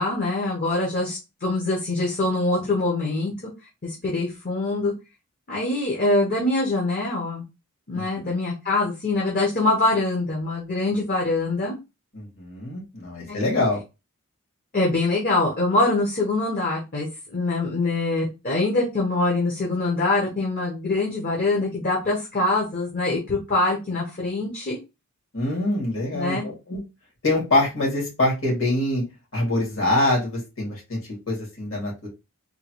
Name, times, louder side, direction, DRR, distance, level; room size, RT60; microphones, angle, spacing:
voice 1, 0.0-3.3 3.8-4.9 5.5-7.4 7.9-11.8 13.3-13.4 14.7-24.8 26.1-26.5, left 2 dB, 40° left, -3 dB, 0.9 m, -24 dB
voice 2, 7.9-8.3 12.1-13.8 25.3-26.8 27.2-29.0 29.3-31.0 31.3-32.1, left 2 dB, 60° left, -2 dB, 2.0 m, -24 dB
3.7 x 2.3 x 2.9 m, 0.26 s
head